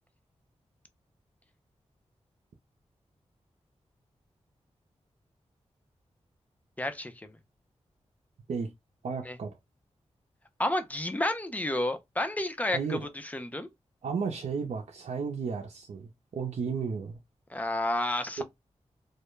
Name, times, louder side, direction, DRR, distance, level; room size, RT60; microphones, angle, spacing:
voice 1, 6.8-7.4 9.2-9.4 10.6-13.7 17.5-18.4, left 1 dB, 15° left, 0.5 m, -31 dB
voice 2, 9.0-9.6 12.7-13.1 14.0-17.2 18.4-18.5, right 5 dB, 80° right, 0.5 m, -33 dB
2.2 x 2.1 x 3.0 m
wide cardioid pair, 85°, 12 cm